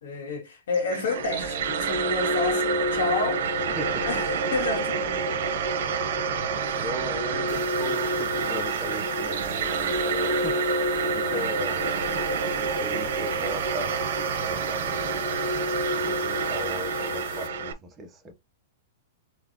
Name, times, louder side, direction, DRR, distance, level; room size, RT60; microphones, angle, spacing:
voice 1, 0.0-3.4 4.0-5.6 6.6-6.8 11.3-11.4 12.0-12.3 15.9-16.1, left 3 dB, 80° left, 2.3 m, -31 dB
sound 1, 0.7-17.7, right 4 dB, 65° right, 0.9 m, -27 dB
voice 2, 3.6-4.1 6.8-11.9 12.6-15.6 16.0-18.3, right 1 dB, 15° right, 1.0 m, -38 dB
sound 2, 7.5-17.5, left 8 dB, 60° left, 1.4 m, -47 dB
4.7 x 3.1 x 3.0 m
supercardioid pair, 160°, 0 cm